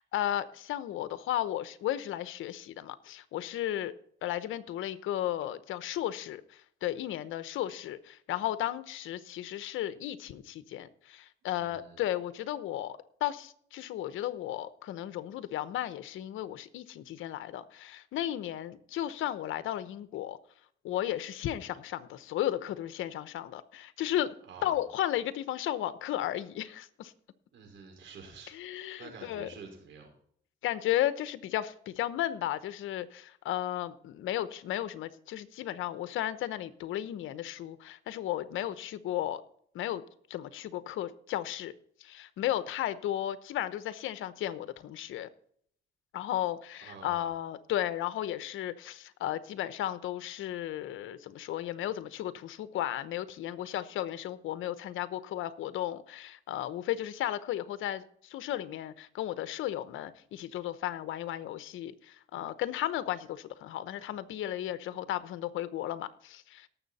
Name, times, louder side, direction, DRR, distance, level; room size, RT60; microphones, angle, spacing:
voice 1, 0.0-3.9 4.2-20.4 20.8-24.3 24.6-27.1 28.5-29.5 30.6-39.4 39.7-40.0 40.3-41.7 42.0-45.3 46.1-66.7, left 12 dB, 85° left, 14 dB, 0.9 m, -34 dB
voice 2, 11.6-12.0 24.4-24.8 27.5-30.1 46.8-47.3, right 5 dB, 70° right, 2 dB, 5.0 m, -49 dB
18.0 x 7.3 x 4.2 m, 0.64 s
cardioid pair, 90°, 20 cm